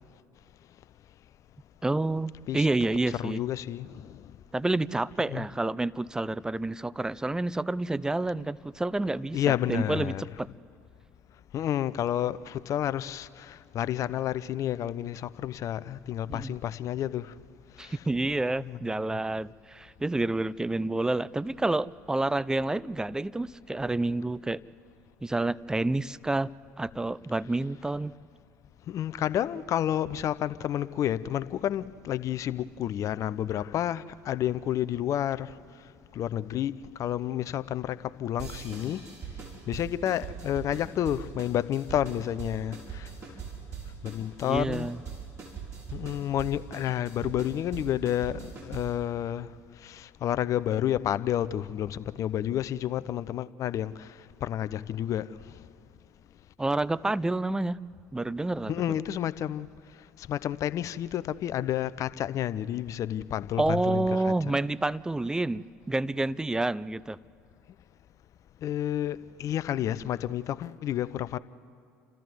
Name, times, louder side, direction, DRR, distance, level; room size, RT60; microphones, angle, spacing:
voice 1, 1.8-3.4 4.5-10.5 16.3-16.6 17.8-24.6 25.2-26.5 26.8-28.1 44.4-45.0 56.6-57.8 58.1-58.7 63.6-67.2, right 2 dB, 10° right, 0.5 m, -29 dB
voice 2, 3.2-4.4 5.3-5.5 9.3-10.2 11.5-17.3 17.7-18.0 18.6-18.8 28.9-39.0 39.7-43.1 44.0-44.9 45.9-55.6 58.7-59.7 60.2-64.3 68.6-71.4, left 11 dB, 50° left, 0.7 m, -30 dB
sound 1, 38.4-49.1, right 6 dB, 45° right, 5.6 m, -41 dB
29.0 x 13.5 x 7.8 m
hypercardioid pair, 65°, 7 cm